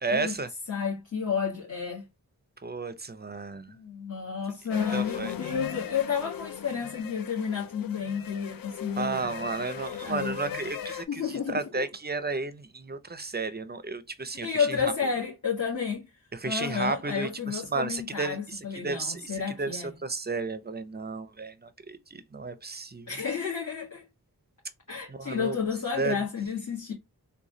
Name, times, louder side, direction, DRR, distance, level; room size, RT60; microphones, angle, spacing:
voice 1, 0.0-0.5 2.6-3.7 4.9-5.3 9.0-11.2 11.5-14.9 16.4-23.1 25.1-25.6 25.9-26.2, right 3 dB, 25° right, 0.6 m, -33 dB
voice 2, 0.7-2.0 3.7-9.3 10.0-10.4 11.1-11.8 14.3-16.1 16.4-19.9 23.1-24.0 24.9-26.9, left 6 dB, 50° left, 1.6 m, -31 dB
sound 1, 4.7-11.0, left 9 dB, 70° left, 0.5 m, -38 dB
3.8 x 2.3 x 3.0 m
wide cardioid pair, 50°, 36 cm